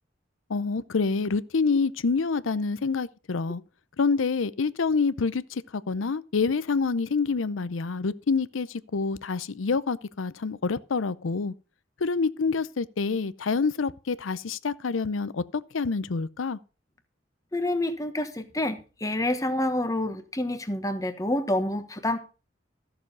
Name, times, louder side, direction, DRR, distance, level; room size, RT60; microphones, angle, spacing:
voice 1, 0.5-3.6 4.0-11.5 12.0-16.6, left 4 dB, 90° left, 0.6 m, -27 dB
voice 2, 17.5-22.2, left 1 dB, 15° left, 1.2 m, -28 dB
13.5 x 7.0 x 5.3 m
head